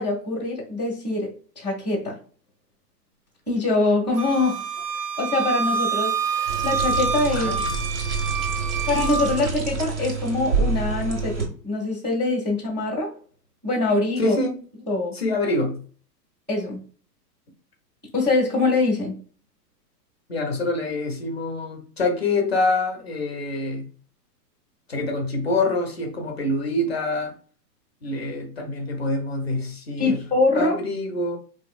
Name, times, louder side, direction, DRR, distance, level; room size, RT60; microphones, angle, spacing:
voice 1, 0.0-2.2 3.5-4.7 5.2-7.6 8.9-13.2 13.6-14.4 14.9-15.2 16.5-16.8 18.1-19.2 30.0-30.8, left 2 dB, 30° right, 0.4 m, -24 dB
Wind instrument woodwind instrument, 4.2-9.4, right 5 dB, 70° right, 0.7 m, -27 dB
sound 1, 6.5-11.5, right 4 dB, 85° right, 1.3 m, -27 dB
voice 2, 14.2-14.6 15.1-15.8 20.3-23.9 24.9-27.3 28.0-30.2 30.5-31.4, left 2 dB, 40° left, 0.4 m, -25 dB
3.8 x 2.6 x 2.3 m
hypercardioid pair, 175°, 50 cm